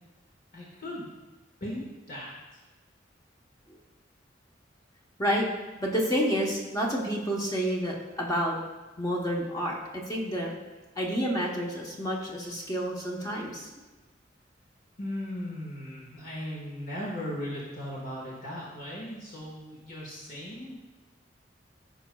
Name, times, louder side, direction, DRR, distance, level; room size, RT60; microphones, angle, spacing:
voice 1, 0.5-1.1 1.6-2.3 15.0-20.7, left 1 dB, 50° left, -5 dB, 1.5 m, -37 dB
voice 2, 5.8-8.6 9.0-10.5 11.0-13.7, equal, 20° left, -2 dB, 1.0 m, -29 dB
15.0 x 5.2 x 2.3 m, 1.2 s
head